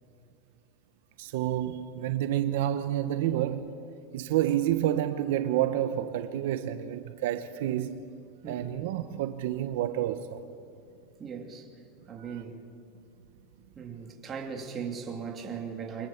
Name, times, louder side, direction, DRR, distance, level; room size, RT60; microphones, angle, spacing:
voice 1, 1.2-3.7 4.1-8.0 8.5-10.4 12.3-12.4, right 12 dB, 70° right, 1.1 m, -29 dB
voice 2, 11.2-11.7 12.1-12.6 13.8-16.1, right 6 dB, 20° right, 2.7 m, -38 dB
29.5 x 24.0 x 7.4 m
supercardioid pair, 170°, 0 cm